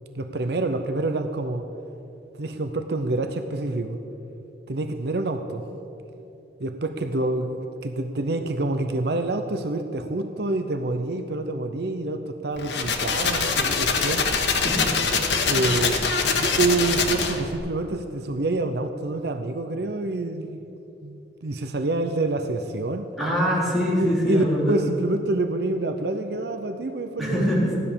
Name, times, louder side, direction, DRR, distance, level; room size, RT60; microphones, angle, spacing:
voice 1, 0.1-1.7 2.4-4.0 4.7-5.6 6.6-14.3 15.5-16.0 16.4-20.7 21.0-23.1 23.9-27.7, right 2 dB, 65° right, 8 dB, 0.7 m, -27 dB
sound 1, 12.6-17.5, left 5 dB, 85° left, 1.4 m, -24 dB
voice 2, 23.2-24.8 27.2-27.8, equal, ahead, -7 dB, 4.2 m, -23 dB
15.5 x 11.0 x 7.0 m, 2.9 s
head